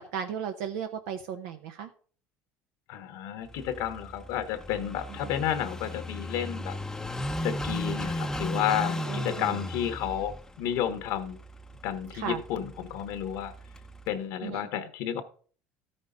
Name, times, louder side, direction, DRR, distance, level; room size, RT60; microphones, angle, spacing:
voice 1, 0.1-1.9 9.1-9.6 12.1-12.4 14.4-14.7, right 8 dB, 80° right, 7 dB, 0.7 m, -35 dB
voice 2, 2.9-6.8 7.4-11.4 11.8-13.5 14.1-15.2, left 10 dB, 70° left, 9 dB, 1.1 m, -31 dB
Car passing by / Idling, 3.5-14.1, left 1 dB, 10° left, 0.6 m, -36 dB
13.0 x 5.4 x 3.8 m, 0.43 s
supercardioid pair, 115°, 6 cm